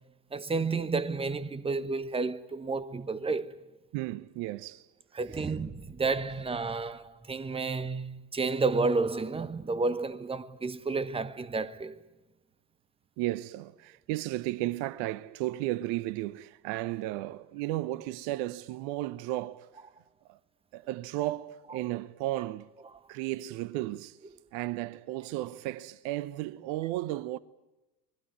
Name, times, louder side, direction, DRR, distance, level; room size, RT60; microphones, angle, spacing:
voice 1, 0.3-3.6 5.1-12.0, right 3 dB, 10° right, 1.2 m, -31 dB
voice 2, 3.9-4.9 5.3-5.5 13.2-19.7 20.3-20.4 20.7-22.7 23.1-24.2 24.5-27.4, right 16 dB, 55° right, 0.9 m, -34 dB
25.0 x 21.0 x 9.5 m
figure-of-eight pair, 75°, 47 cm